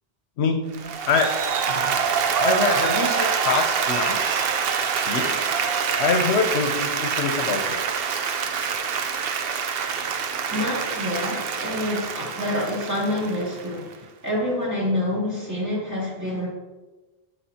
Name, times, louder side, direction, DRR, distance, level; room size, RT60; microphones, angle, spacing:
voice 1, 0.4-1.3 1.7-2.0 2.4-4.5 5.1-5.5 6.0-7.8, left 4 dB, 75° left, 4 dB, 0.9 m, -25 dB
Applause, 0.7-13.9, right 6 dB, 65° right, 0.8 m, -25 dB
voice 2, 9.8-16.5, left 1 dB, 15° right, -6 dB, 2.5 m, -27 dB
9.7 x 5.6 x 2.8 m, 1.2 s
omnidirectional pair, 1.1 m